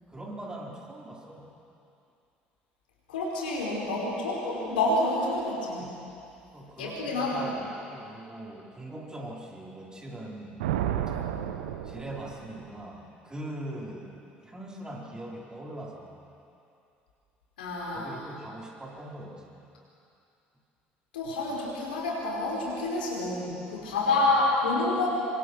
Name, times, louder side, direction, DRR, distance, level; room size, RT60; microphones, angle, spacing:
voice 1, 0.1-1.5 6.5-10.7 11.8-14.1 14.4-16.3 17.9-19.6 24.1-24.2, right 1 dB, 15° right, -3 dB, 5.1 m, -41 dB
voice 2, 3.1-5.9 6.8-7.5 11.1-11.4 17.6-18.2 21.1-25.1, left 2 dB, 75° left, -4 dB, 5.2 m, -28 dB
Thunder, 10.6-12.8, right 10 dB, 70° right, 1.1 m, -32 dB
26.5 x 26.0 x 4.8 m, 2.7 s
figure-of-eight pair, 60°, 5 cm